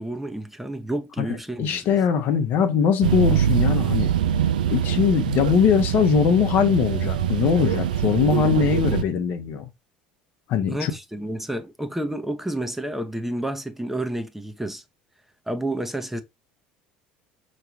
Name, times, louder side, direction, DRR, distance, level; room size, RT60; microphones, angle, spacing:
voice 1, 0.0-1.9 10.7-14.8 15.5-16.2, right 1 dB, 5° right, 0.8 m, -30 dB
voice 2, 1.6-4.1 4.7-9.7 10.5-10.9, left 7 dB, 50° left, 0.9 m, -21 dB
sound 1, 3.0-9.0, right 9 dB, 75° right, 0.3 m, -23 dB
5.7 x 3.2 x 2.7 m
figure-of-eight pair, 65°, 4 cm